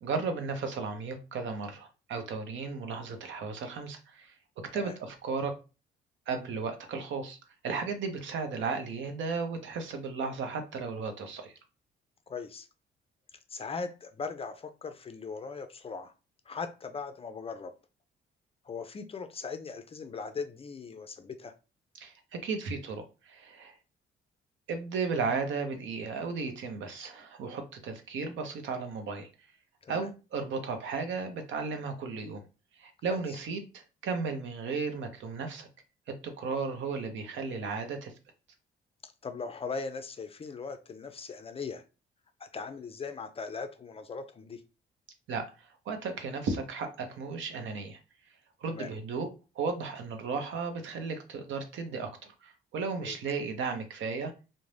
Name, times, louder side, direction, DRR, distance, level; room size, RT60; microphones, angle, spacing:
voice 1, 0.0-4.3 4.7-5.5 6.3-7.4 7.6-11.5 22.0-22.1 22.4-23.7 24.7-29.3 29.9-32.4 32.8-35.7 36.1-38.1 45.3-48.0 48.6-49.3 49.6-54.3, right 4 dB, 70° right, 0.7 m, -35 dB
voice 2, 12.3-12.7 13.5-16.1 16.5-17.7 18.7-21.5 29.8-30.1 39.0-41.8 42.4-44.6 48.7-48.9 53.0-53.2, left 5 dB, 30° left, 0.4 m, -39 dB
2.5 x 2.1 x 3.2 m
cardioid pair, 90°, 20 cm